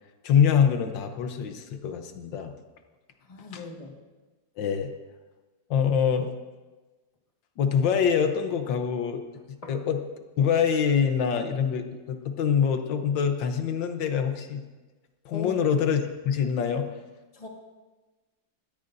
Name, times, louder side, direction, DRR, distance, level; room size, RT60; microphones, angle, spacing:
voice 1, 0.2-2.5 3.5-3.6 4.6-4.9 5.7-6.3 7.6-9.2 9.7-10.0 10.4-14.6 15.2-16.9, left 7 dB, 85° left, 7 dB, 1.6 m, -25 dB
voice 2, 3.3-4.0 9.6-9.8 15.3-15.6 17.3-17.5, left 5 dB, 20° left, 0 dB, 1.6 m, -39 dB
19.0 x 13.5 x 2.6 m, 1.2 s
omnidirectional pair, 2.0 m